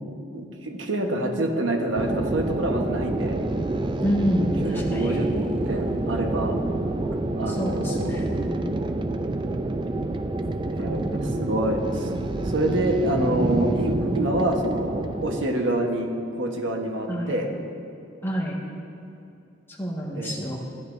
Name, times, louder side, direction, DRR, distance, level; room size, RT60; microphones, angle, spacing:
voice 1, 0.3-3.4 4.6-5.3 5.7-6.6 7.3-8.1 10.8-12.1 12.5-16.1 16.4-17.5 20.2-20.4, right 1 dB, 75° right, 2 dB, 1.2 m, -26 dB
sound 1, 1.9-15.4, right 2 dB, 25° right, 0.4 m, -28 dB
voice 2, 4.0-5.2 7.5-8.7 10.8-11.4 17.1-17.4 18.2-18.6 19.8-20.6, equal, 10° left, -4 dB, 1.5 m, -28 dB
16.5 x 10.5 x 2.6 m, 2.6 s
head